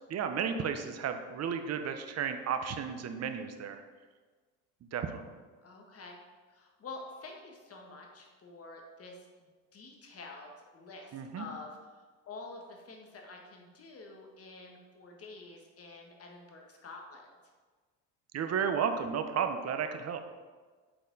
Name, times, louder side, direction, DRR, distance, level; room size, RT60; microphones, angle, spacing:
voice 1, 0.1-3.8 4.9-5.3 11.1-11.4 18.3-20.2, right 7 dB, 45° right, 7 dB, 0.8 m, -33 dB
voice 2, 5.6-6.2 6.5-17.3, left 3 dB, 40° left, 1 dB, 1.5 m, -48 dB
7.7 x 4.1 x 4.0 m, 1.4 s
supercardioid pair, 75°, 37 cm